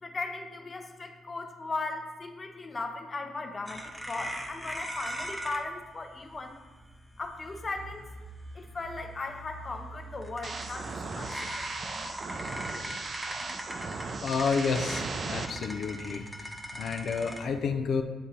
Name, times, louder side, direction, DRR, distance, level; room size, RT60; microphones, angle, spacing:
voice 1, 0.0-6.6 7.2-8.1 8.5-11.7, left 3 dB, 30° left, 5 dB, 0.7 m, -37 dB
sound 1, 3.7-17.4, equal, 10° right, 0.9 m, -41 dB
sound 2, 10.4-15.5, right 3 dB, 45° right, 0.6 m, -37 dB
voice 2, 14.2-18.0, left 5 dB, 65° left, 6 dB, 0.4 m, -30 dB
9.5 x 3.7 x 2.8 m, 1.2 s
cardioid pair, 90°, 0 cm